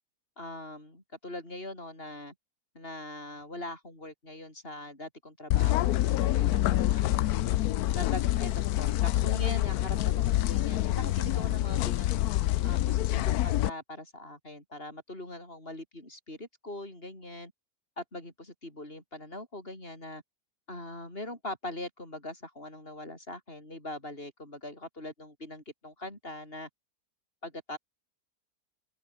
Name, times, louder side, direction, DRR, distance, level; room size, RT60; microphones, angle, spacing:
voice 1, 0.4-2.3 2.7-7.3 7.9-12.2 12.6-17.5 18.0-20.2 20.7-26.7 27.4-27.8, left 1 dB, 35° left, 8.2 m, -42 dB
sound 1, 5.5-13.7, left 14 dB, 70° left, 1.1 m, -26 dB
open air
omnidirectional pair, 1.8 m